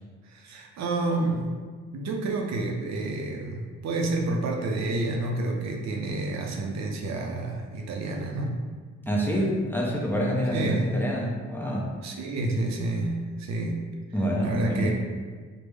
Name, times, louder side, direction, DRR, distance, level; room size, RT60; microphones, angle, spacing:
voice 1, 0.2-1.5 1.9-8.6 10.5-10.9 12.0-13.8 14.4-14.9, right 2 dB, 65° right, 1 dB, 0.5 m, -29 dB
voice 2, 9.1-11.9 14.1-14.9, equal, 5° left, -4 dB, 0.5 m, -26 dB
3.3 x 2.1 x 3.3 m, 1.5 s
cardioid pair, 90°, 30 cm